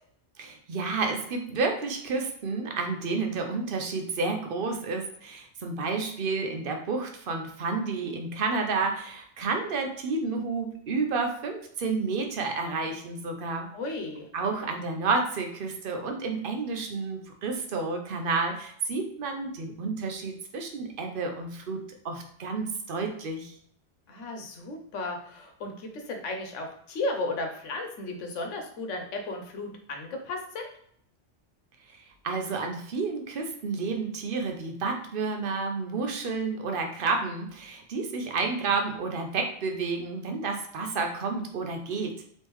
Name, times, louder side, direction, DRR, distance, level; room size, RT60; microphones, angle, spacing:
voice 1, 0.4-13.7 14.3-23.6 31.9-32.0 32.2-42.2, right 4 dB, 55° right, 4 dB, 0.7 m, -30 dB
voice 2, 13.7-14.3 24.1-30.7, left 2 dB, 85° left, 3 dB, 1.1 m, -34 dB
3.6 x 3.1 x 3.0 m, 0.65 s
omnidirectional pair, 1.2 m